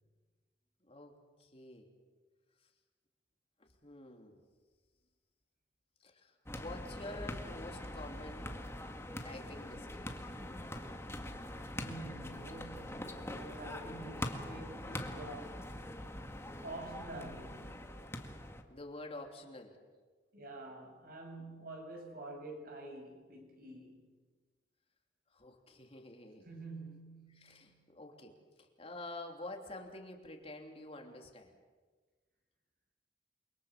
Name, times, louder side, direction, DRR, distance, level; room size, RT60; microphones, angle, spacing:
voice 1, 0.8-1.9 3.8-4.4 6.0-8.6 9.2-10.1 18.7-19.8 25.3-26.5 27.4-31.6, left 2 dB, 35° left, 3.1 m, -48 dB
sound 1, 6.5-18.6, left 1 dB, 15° left, 1.9 m, -43 dB
voice 2, 11.8-15.7 16.6-18.1 20.3-24.1 26.5-27.9, right 2 dB, 55° right, 7.0 m, -48 dB
29.5 x 23.5 x 7.5 m
head